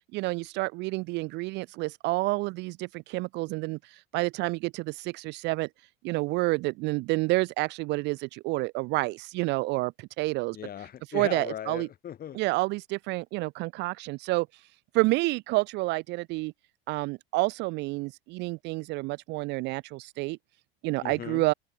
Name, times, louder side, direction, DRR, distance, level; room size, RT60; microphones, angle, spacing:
voice 1, 0.1-5.7 6.0-10.6 11.1-11.9 12.3-14.6 14.9-16.5 16.9-20.4 20.8-21.5, right 23 dB, 35° right, 0.5 m, -29 dB
voice 2, 10.5-12.4 21.0-21.4, left 10 dB, 30° left, 2.2 m, -38 dB
figure-of-eight pair, 80°, 31 cm